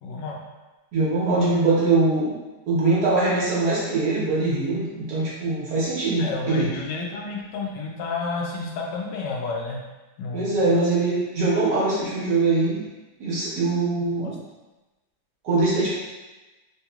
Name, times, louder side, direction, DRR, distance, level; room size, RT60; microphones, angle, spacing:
voice 1, 0.0-0.4 6.2-9.8 10.2-10.6 13.9-14.3, left 3 dB, 80° left, -1 dB, 1.3 m, -31 dB
voice 2, 0.9-2.4 2.7-6.7 10.3-12.8 13.2-14.3 15.4-15.9, right 3 dB, 65° right, -8 dB, 1.6 m, -22 dB
3.6 x 2.9 x 2.3 m, 1.1 s
omnidirectional pair, 1.9 m